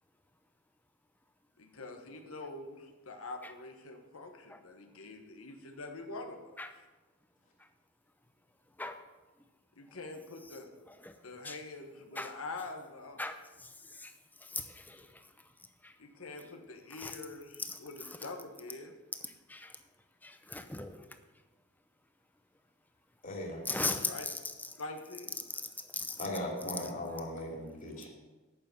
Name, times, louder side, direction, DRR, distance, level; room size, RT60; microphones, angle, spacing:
voice 1, 1.6-6.6 9.8-10.7 11.2-13.2 16.0-18.9 24.0-24.3 24.8-25.4, left 3 dB, 85° left, 4 dB, 1.4 m, -45 dB
voice 2, 13.2-14.1 14.4-15.3 15.8-16.0 16.9-17.2 17.6-18.1 19.2-19.8 20.2-21.2 23.6-24.7 25.6-26.3 26.8-26.9, left 3 dB, 10° left, 8 dB, 0.7 m, -39 dB
voice 3, 23.2-23.6 26.2-28.1, left 1 dB, 40° left, -1 dB, 2.8 m, -38 dB
8.8 x 6.8 x 7.7 m, 1.2 s
head